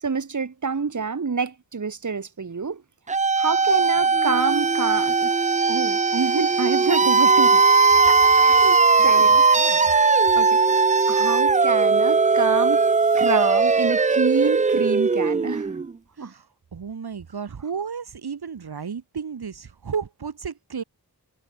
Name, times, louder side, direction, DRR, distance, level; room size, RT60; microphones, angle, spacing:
voice 1, 0.0-2.8 3.4-5.4 5.7-7.6 8.5-9.3 10.3-12.8 13.2-15.8 16.2-16.3, right 5 dB, 50° right, 1.3 m, -27 dB
sound 1, 3.1-15.9, right 4 dB, 20° right, 0.3 m, -19 dB
voice 2, 8.0-9.9 16.2-20.8, right 6 dB, 70° right, 1.2 m, -34 dB
wide cardioid pair, 60°, 39 cm